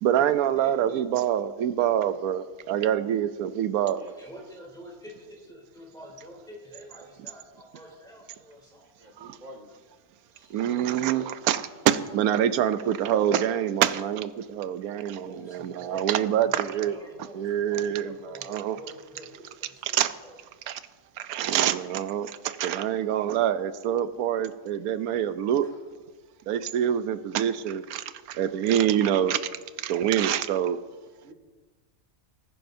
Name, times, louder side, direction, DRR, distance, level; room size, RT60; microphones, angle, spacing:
voice 1, 0.0-4.1 10.5-17.0 17.3-18.8 19.8-20.1 20.7-20.8 21.3-25.7 26.5-29.4 29.8-30.8, right 10 dB, 85° right, 12 dB, 1.1 m, -25 dB
voice 2, 0.6-0.9 4.2-8.9 10.3-11.3 15.2-20.3 25.6-25.7, equal, 5° left, -2 dB, 3.0 m, -47 dB
voice 3, 8.8-9.7 16.6-17.2 18.7-18.9 28.2-28.5 31.1-31.3, right 1 dB, 60° right, 0 dB, 2.2 m, -50 dB
20.0 x 9.9 x 2.7 m, 1.3 s
omnidirectional pair, 1.5 m